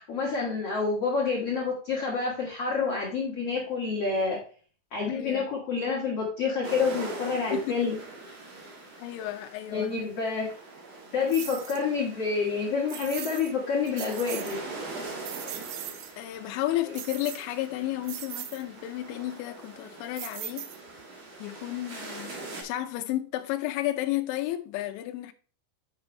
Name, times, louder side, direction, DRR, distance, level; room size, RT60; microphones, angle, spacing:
voice 1, 0.0-4.4 4.9-8.0 9.7-10.5 11.1-14.6, left 5 dB, 65° left, 1.5 m, -28 dB
voice 2, 5.1-5.5 7.5-7.8 9.0-10.1 14.9-15.3 16.2-20.7 21.4-25.3, left 15 dB, 90° left, 3.1 m, -32 dB
sound 1, 6.6-22.6, right 2 dB, 45° right, 2.4 m, -43 dB
sound 2, 11.3-11.8 12.9-13.5 13.9-14.6 15.0-16.1 16.9-17.7 18.0-18.6 20.2-21.0, right 12 dB, 85° right, 2.2 m, -39 dB
8.7 x 6.1 x 3.2 m
omnidirectional pair, 5.3 m